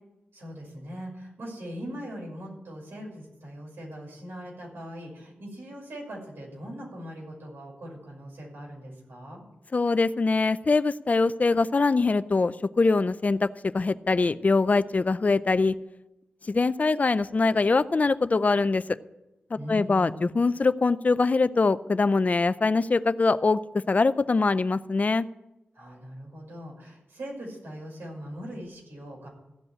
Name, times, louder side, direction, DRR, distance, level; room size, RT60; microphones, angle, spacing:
voice 1, 0.3-9.4 19.5-20.3 25.7-29.3, equal, 85° right, -3 dB, 5.9 m, -40 dB
voice 2, 9.7-15.8 16.5-18.8 19.7-23.6 23.9-25.3, left 3 dB, 40° left, 15 dB, 0.5 m, -23 dB
15.5 x 5.3 x 9.7 m, 0.94 s
cardioid pair, 75°, 4 cm